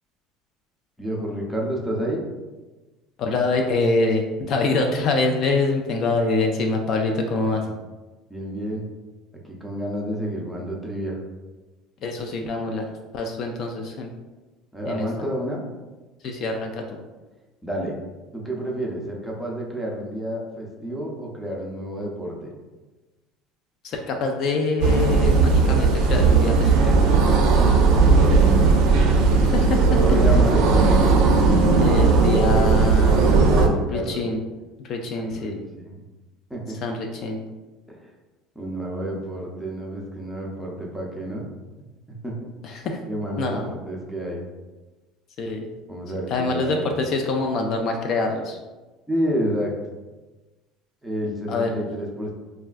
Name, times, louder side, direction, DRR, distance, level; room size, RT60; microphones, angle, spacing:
voice 1, 1.0-2.2 8.3-8.8 9.4-11.2 14.7-15.6 17.6-18.0 18.3-22.5 27.5-28.7 29.3-29.4 29.9-30.8 33.5-34.2 35.2-36.0 36.5-36.8 37.9-38.1 38.6-41.4 42.2-42.4 43.1-44.4 45.9-46.9 49.1-49.7 51.0-52.3, equal, 5° right, -2 dB, 0.5 m, -30 dB
voice 2, 3.2-7.6 12.0-14.1 14.9-15.1 16.2-17.0 23.8-26.9 29.4-30.0 31.8-33.2 33.9-34.4 34.9-35.6 36.8-37.4 42.6-43.0 43.4-43.8 45.4-45.7 46.3-48.6 51.5-51.7, left 3 dB, 45° left, 3 dB, 0.3 m, -25 dB
sound 1, 24.8-33.7, right 4 dB, 70° right, 0.4 m, -17 dB
sound 2, 25.7-31.5, right 2 dB, 85° left, 1.1 m, -30 dB
3.3 x 2.2 x 2.4 m, 1.2 s
cardioid pair, 145°, 0 cm